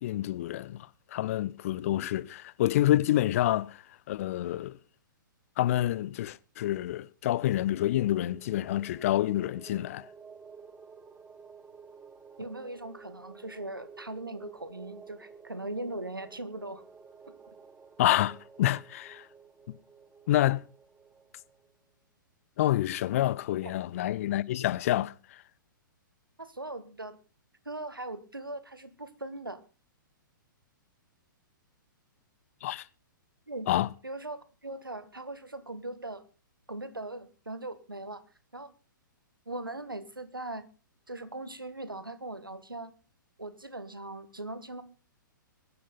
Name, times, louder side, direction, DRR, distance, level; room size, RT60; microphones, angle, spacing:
voice 1, 0.0-3.8 4.1-4.8 5.6-10.1 18.0-19.3 20.3-20.6 22.6-25.1 32.6-32.8 33.7-33.9, left 14 dB, 40° left, 0.6 m, -28 dB
sound 1, 7.4-21.7, right 5 dB, 10° right, 0.7 m, -52 dB
voice 2, 12.4-16.8 23.6-23.7 26.4-27.2 27.6-29.6 33.5-33.7 34.0-36.2 36.7-38.2 38.5-38.7 39.5-40.6 41.1-42.9 43.4-44.8, right 2 dB, 85° right, 1.5 m, -40 dB
22.0 x 9.5 x 4.0 m
figure-of-eight pair, 115°, 11 cm